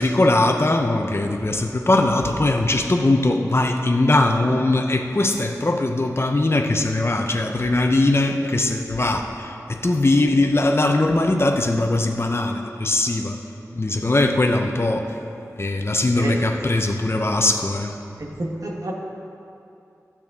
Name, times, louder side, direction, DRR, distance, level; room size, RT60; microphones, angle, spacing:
voice 1, 0.0-13.4 13.7-15.1 15.6-17.9, left 2 dB, 45° left, 4 dB, 0.8 m, -20 dB
voice 2, 18.2-18.9, right 2 dB, 70° right, 0 dB, 1.3 m, -29 dB
12.5 x 8.5 x 3.6 m, 2.7 s
wide cardioid pair, 45°, 6 cm